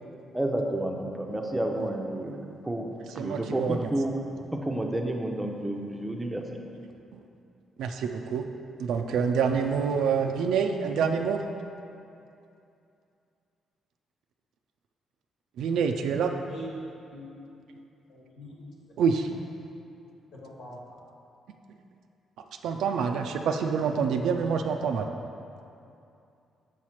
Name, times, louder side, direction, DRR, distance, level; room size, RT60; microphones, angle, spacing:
voice 1, 0.3-4.1 4.5-6.6, right 1 dB, 10° right, 1 dB, 0.5 m, -30 dB
voice 2, 3.2-3.9 7.1-7.2 7.8-8.4 8.8-11.4 15.6-16.3 19.0-19.3 22.6-25.1, right 6 dB, 80° right, 5 dB, 0.3 m, -27 dB
voice 3, 18.1-18.7 20.3-21.0, equal, 75° left, -4 dB, 1.5 m, -43 dB
6.8 x 3.1 x 5.7 m, 2.6 s
cardioid pair, 125°, 0 cm